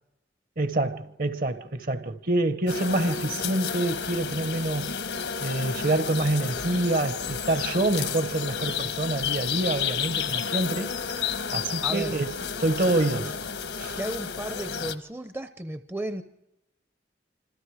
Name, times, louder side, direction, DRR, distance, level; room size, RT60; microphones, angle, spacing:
voice 1, 0.6-5.0 5.4-10.9 11.5-12.3 12.6-13.4 13.8-13.9, right 2 dB, 50° right, 1.3 m, -26 dB
sound 1, 2.7-15.0, left 7 dB, 80° left, 1.3 m, -31 dB
voice 2, 11.8-12.2 14.0-16.2, right 1 dB, 15° right, 0.7 m, -34 dB
27.0 x 26.0 x 5.0 m
head